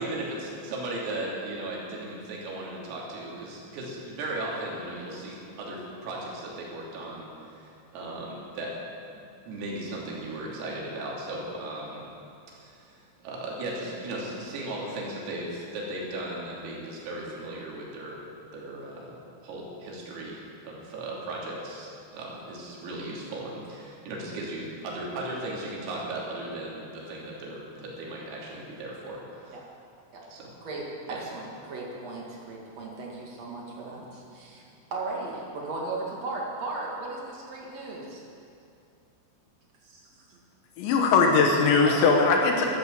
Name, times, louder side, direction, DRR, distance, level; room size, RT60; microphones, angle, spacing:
voice 1, 0.0-8.7 9.5-12.0 12.6-18.2 18.5-29.6 30.3-30.5 31.1-31.2, right 1 dB, 90° right, -4 dB, 5.5 m, -36 dB
voice 2, 30.6-34.6 34.9-38.2 41.9-42.0, right 3 dB, 45° right, -3 dB, 2.4 m, -36 dB
voice 3, 40.8-42.8, left 4 dB, 70° left, 2 dB, 3.3 m, -20 dB
13.5 x 12.5 x 7.4 m, 2.5 s
omnidirectional pair, 5.8 m